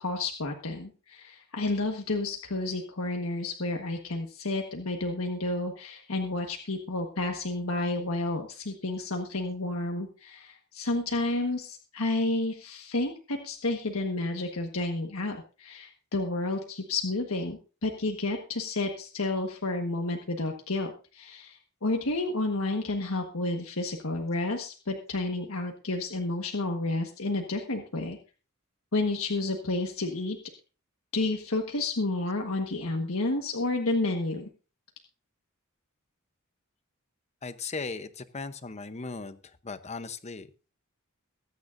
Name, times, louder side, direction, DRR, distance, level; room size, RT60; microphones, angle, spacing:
voice 1, 0.0-28.2 28.9-30.4 31.1-34.5, left 2 dB, 75° left, 3 dB, 1.5 m, -31 dB
voice 2, 37.4-39.4 39.6-40.7, left 4 dB, 30° left, 12 dB, 0.8 m, -37 dB
23.0 x 9.3 x 2.6 m, 0.35 s
head